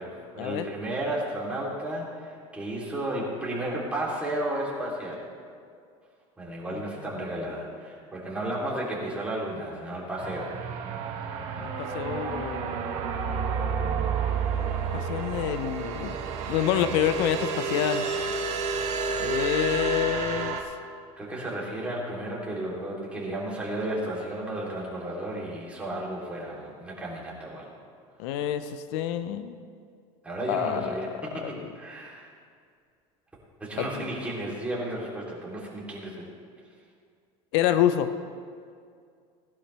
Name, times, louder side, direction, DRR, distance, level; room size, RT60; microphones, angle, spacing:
voice 1, 0.0-5.2 6.4-10.5 11.3-11.4 21.2-27.7 28.3-28.4 30.2-32.3 33.6-36.3, right 1 dB, 10° right, -5 dB, 3.4 m, -33 dB
sound 1, 10.2-20.6, right 5 dB, 50° right, 1.7 m, -30 dB
voice 2, 11.6-12.8 14.9-16.2 16.5-18.1 19.2-20.6 28.2-29.5 30.5-31.0 31.4-31.7 33.8-34.1 37.5-38.1, left 10 dB, 80° left, 11 dB, 0.7 m, -27 dB
18.5 x 11.5 x 3.4 m, 2.2 s
cardioid pair, 140°, 14 cm